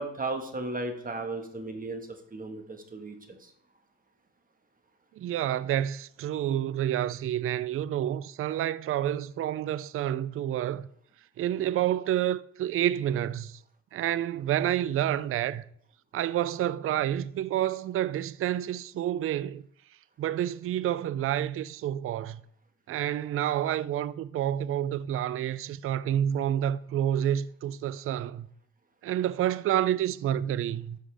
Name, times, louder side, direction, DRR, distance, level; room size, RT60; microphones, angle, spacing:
voice 1, 0.0-3.5, right 2 dB, 30° right, 1.5 m, -35 dB
voice 2, 5.2-10.9 11.4-13.6 13.9-15.6 16.1-19.6 20.2-22.4 22.9-28.5 29.0-31.0, right 11 dB, 45° right, 0.4 m, -29 dB
12.5 x 5.6 x 3.4 m
cardioid pair, 90°, 30 cm